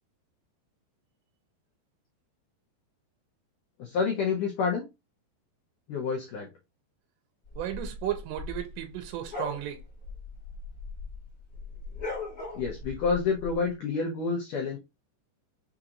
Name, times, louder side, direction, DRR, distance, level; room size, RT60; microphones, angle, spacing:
voice 1, 3.8-4.8 5.9-6.5 12.5-14.8, left 5 dB, 85° left, 1.8 m, -28 dB
sound 1, 7.5-11.2 11.5-13.5, left 3 dB, 45° left, 1.1 m, -38 dB
voice 2, 7.5-9.8, right 12 dB, 80° right, 2.9 m, -34 dB
6.5 x 2.6 x 2.9 m
omnidirectional pair, 5.1 m